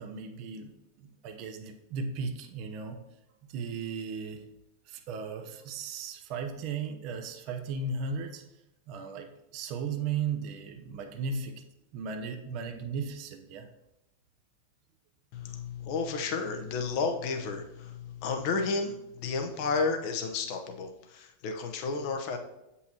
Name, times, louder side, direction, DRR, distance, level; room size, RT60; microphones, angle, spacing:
voice 1, 0.0-3.0 3.5-4.5 4.9-8.4 8.9-11.6 11.9-13.7, right 5 dB, 40° right, 6 dB, 0.7 m, -36 dB
voice 2, 15.3-22.4, left 4 dB, 45° left, 4 dB, 0.8 m, -32 dB
8.0 x 5.5 x 2.9 m, 0.90 s
figure-of-eight pair, 90°, 0 cm